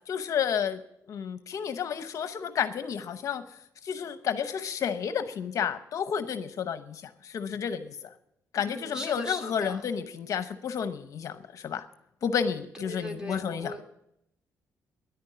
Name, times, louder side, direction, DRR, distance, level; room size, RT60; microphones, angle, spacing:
voice 1, 0.1-0.8 1.1-3.4 3.8-8.0 8.5-11.9 12.2-13.7, left 7 dB, 60° left, 10 dB, 0.8 m, -31 dB
voice 2, 8.6-9.9 12.7-13.8, left 1 dB, 10° right, 3 dB, 2.6 m, -39 dB
10.5 x 9.7 x 9.8 m, 0.77 s
cardioid pair, 125°, 6 cm